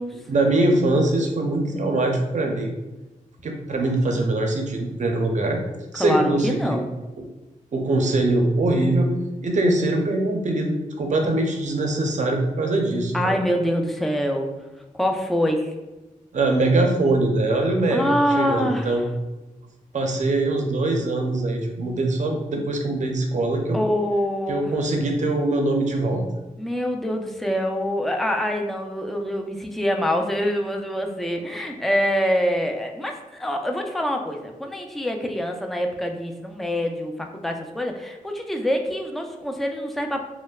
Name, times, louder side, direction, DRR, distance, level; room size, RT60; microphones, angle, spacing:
voice 1, 0.3-2.7 3.4-5.6 5.9-6.8 7.7-9.1 9.4-13.4 16.3-19.0 19.9-23.8 24.5-26.3, right 2 dB, 55° right, 3 dB, 0.5 m, -22 dB
voice 2, 6.0-6.9 13.1-14.5 15.0-15.7 17.9-19.0 23.7-24.7 26.6-40.2, equal, ahead, 3 dB, 0.3 m, -25 dB
3.1 x 2.0 x 2.2 m, 1.1 s
cardioid pair, 70°, 15 cm